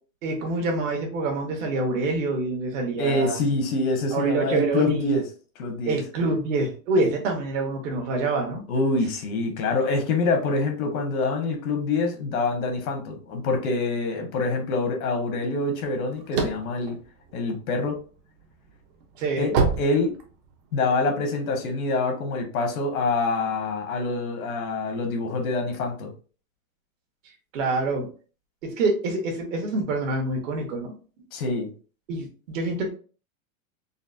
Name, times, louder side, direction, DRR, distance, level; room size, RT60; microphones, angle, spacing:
voice 1, 0.2-3.4 4.1-5.1 5.9-8.6 19.2-19.5 27.5-28.1 28.8-30.9 32.1-32.9, right 2 dB, 60° right, 2 dB, 1.3 m, -26 dB
voice 2, 3.0-5.2 5.6-6.0 8.7-17.0 17.3-17.9 19.4-20.1 20.7-26.1 31.3-31.7, left 3 dB, 80° left, 4 dB, 1.2 m, -25 dB
sound 1, 15.8-18.0 18.5-20.7, right 4 dB, 40° right, 0.7 m, -26 dB
4.0 x 2.1 x 2.5 m, 0.38 s
supercardioid pair, 165°, 42 cm